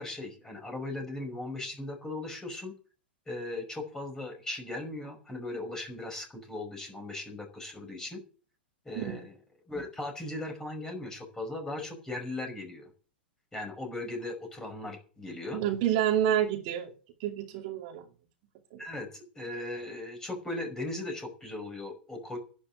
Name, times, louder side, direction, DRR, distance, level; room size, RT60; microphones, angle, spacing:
voice 1, 0.0-2.7 3.3-8.2 8.9-9.3 9.7-12.9 13.5-15.6 18.8-22.4, left 2 dB, 10° left, 4 dB, 5.4 m, -38 dB
voice 2, 15.5-16.9 17.2-18.0 18.7-18.8, right 10 dB, 45° right, 3 dB, 2.4 m, -28 dB
11.5 x 10.5 x 8.0 m, 0.38 s
figure-of-eight pair, 105°, 6 cm